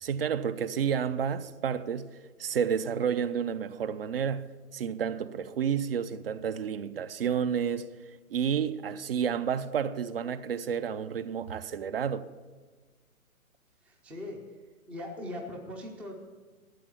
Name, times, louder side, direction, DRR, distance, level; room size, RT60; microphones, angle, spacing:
voice 1, 0.0-2.1 2.4-7.9 8.3-12.2, right 7 dB, 45° right, 0.7 m, -30 dB
voice 2, 13.8-14.5 14.9-16.1, left 1 dB, 5° right, 0.5 m, -40 dB
13.0 x 8.1 x 6.9 m
figure-of-eight pair, 130°, 43 cm